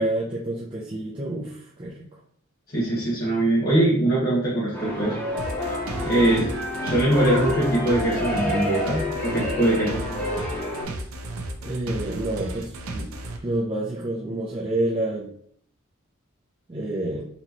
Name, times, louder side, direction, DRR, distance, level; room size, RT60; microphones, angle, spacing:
voice 1, 0.0-2.2 6.2-6.4 11.6-13.1 13.4-15.3 16.7-17.2, right 1 dB, 25° right, -5 dB, 0.5 m, -28 dB
voice 2, 2.7-5.1 6.0-6.4 6.8-10.0, right 1 dB, 45° left, -9 dB, 1.2 m, -22 dB
sound 1, 4.7-10.8, left 1 dB, 10° left, 0.8 m, -29 dB
sound 2, 5.4-13.4, right 1 dB, 85° right, 0.6 m, -34 dB
4.2 x 3.0 x 2.8 m, 0.62 s
head